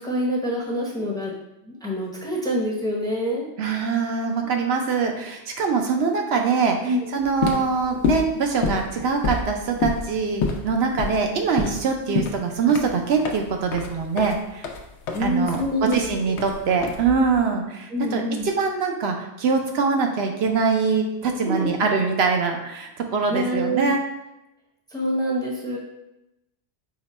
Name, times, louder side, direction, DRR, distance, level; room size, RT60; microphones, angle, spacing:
voice 1, 0.0-1.3 1.6-3.5 6.8-7.1 12.0-12.3 15.1-16.4 17.9-18.4 21.4-21.7 23.3-23.9 24.9-25.8, equal, 5° left, -3 dB, 0.6 m, -26 dB
voice 2, 3.6-14.7 15.2-24.0, right 5 dB, 70° right, 3 dB, 0.9 m, -23 dB
sound 1, 7.2-17.4, left 5 dB, 90° left, 0.9 m, -29 dB
4.9 x 2.2 x 4.1 m, 0.92 s
omnidirectional pair, 1.1 m